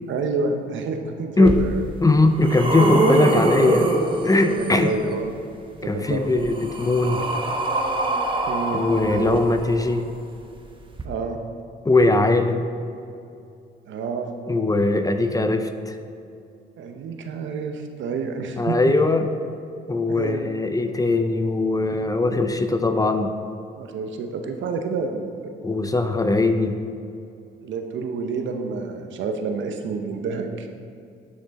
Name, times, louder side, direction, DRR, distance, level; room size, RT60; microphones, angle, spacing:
voice 1, 0.1-1.8 4.5-5.4 5.8-6.2 8.5-9.4 11.0-11.4 13.9-14.3 16.8-18.9 20.1-20.4 21.9-22.0 23.8-25.5 27.6-30.7, right 4 dB, 70° right, 5 dB, 0.9 m, -28 dB
sound 1, 1.5-1.6 2.1-4.9 6.1-10.0 10.9-11.0, right 2 dB, 25° right, 1.1 m, -24 dB
voice 2, 2.0-3.9 4.2-4.9 5.8-7.2 8.7-10.0 11.8-12.6 14.5-15.9 18.6-19.3 19.9-23.3 25.6-26.8, left 2 dB, 20° left, 7 dB, 0.6 m, -20 dB
9.6 x 6.0 x 4.2 m, 2.6 s
cardioid pair, 90°, 20 cm